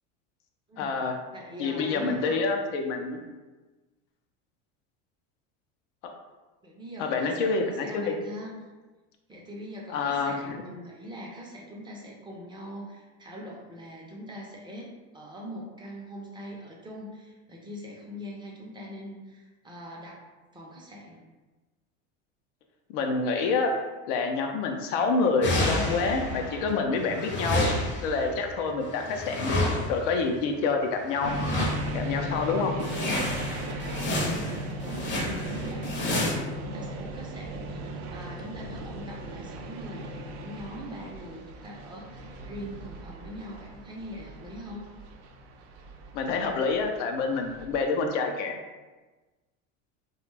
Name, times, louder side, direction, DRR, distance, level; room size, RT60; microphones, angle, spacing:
voice 1, 0.8-1.2 1.6-3.2 6.0-6.1 7.0-8.2 9.9-10.6 22.9-23.7 24.1-27.7 28.0-29.6 29.9-31.3 31.9-32.7 46.1-48.6, left 4 dB, 75° left, 3 dB, 0.5 m, -27 dB
voice 2, 1.3-2.5 6.6-8.5 9.3-20.2 20.5-21.2 34.3-44.9, equal, 15° right, -2 dB, 0.5 m, -42 dB
sound 1, 25.4-26.7 27.0-30.2 31.2-32.1 32.4-32.5 32.8-36.3, left 1 dB, 30° left, 0.6 m, -30 dB
sound 2, 31.2-47.8, right 1 dB, 65° right, 0.5 m, -37 dB
2.4 x 2.3 x 3.2 m, 1.2 s
supercardioid pair, 110°, 36 cm